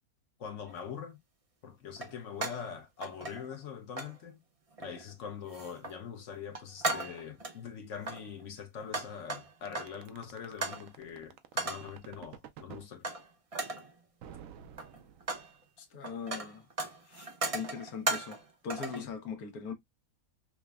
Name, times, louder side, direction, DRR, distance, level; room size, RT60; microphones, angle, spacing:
voice 1, 0.4-1.2 1.6-4.4 4.8-13.1 18.9-19.1, left 7 dB, 60° left, 1.0 m, -43 dB
sound 1, 0.7-0.8 2.0-2.7 3.0-3.7 4.0-4.2 4.8-5.1 5.5-6.0 6.3-7.6 8.0-10.1 10.6-10.9 11.6-11.9 13.0-13.3 13.5-13.9 14.6-15.5 15.8-18.4 18.7-19.0, right 2 dB, 35° right, 0.5 m, -37 dB
sound 2, 9.7-12.9 14.2-15.6, right 9 dB, 70° right, 0.9 m, -49 dB
voice 2, 15.8-16.7 17.1-19.7, left 6 dB, 80° left, 1.3 m, -41 dB
5.8 x 2.1 x 2.2 m
omnidirectional pair, 1.5 m